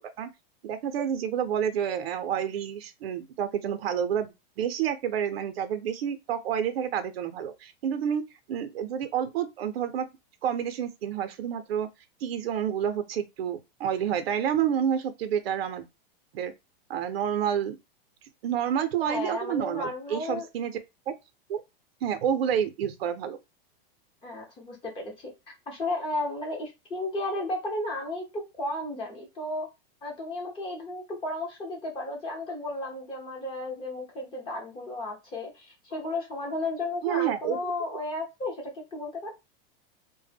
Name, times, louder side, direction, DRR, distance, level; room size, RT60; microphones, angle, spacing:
voice 1, 0.6-8.2 8.5-10.1 10.4-11.9 12.2-15.9 16.3-16.5 16.9-17.8 18.4-20.7 21.5-21.6 22.0-23.4 37.0-37.7, right 9 dB, 90° right, 0.6 m, -29 dB
voice 2, 19.0-20.5 24.2-25.3 25.7-29.7 30.0-39.3, left 2 dB, 15° left, 0.8 m, -33 dB
2.1 x 2.0 x 3.3 m
supercardioid pair, 160°, 29 cm